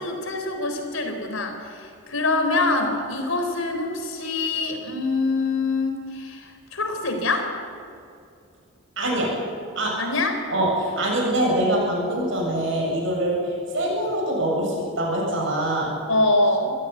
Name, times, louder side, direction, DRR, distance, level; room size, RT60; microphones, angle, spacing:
voice 1, 0.0-7.5 10.0-10.3 16.1-16.7, left 2 dB, 80° left, 5 dB, 4.2 m, -24 dB
voice 2, 9.0-9.3 9.8-10.0 10.5-13.4 13.7-15.9, right 1 dB, 65° right, -2 dB, 7.6 m, -24 dB
26.0 x 15.5 x 8.3 m, 2.5 s
head